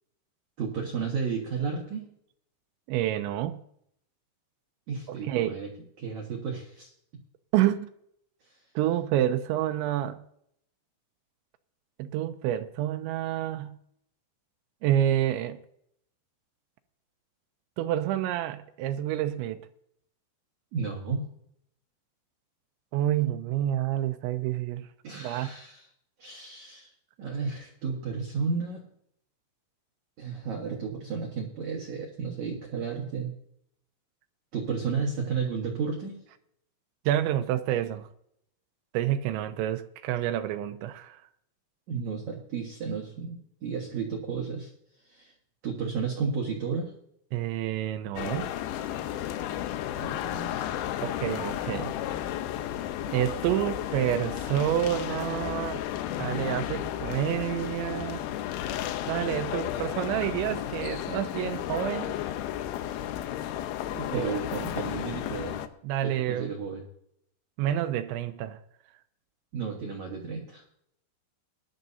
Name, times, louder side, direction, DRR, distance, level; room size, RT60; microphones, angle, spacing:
voice 1, 0.6-2.1 4.9-5.7 6.0-6.9 8.4-8.6 20.7-21.2 25.0-25.9 26.2-28.8 30.2-33.3 34.5-36.2 41.9-44.7 45.0-45.3 45.6-46.9 49.9-50.9 63.9-65.6 66.0-66.8 69.5-70.6, right 5 dB, 60° right, 2.1 m, -33 dB
voice 2, 2.9-3.6 5.1-5.6 7.5-7.9 8.8-10.2 12.0-13.8 14.8-15.6 17.8-19.6 22.9-24.9 25.1-25.5 37.1-38.1 38.9-41.3 47.3-48.5 51.0-51.9 53.1-55.8 56.2-58.3 59.1-62.2 64.1-64.4 65.8-66.5 67.6-68.6, right 12 dB, 85° right, 2.9 m, -28 dB
sound 1, 48.2-65.7, left 11 dB, 90° left, 2.1 m, -33 dB
20.0 x 11.5 x 2.7 m
omnidirectional pair, 5.3 m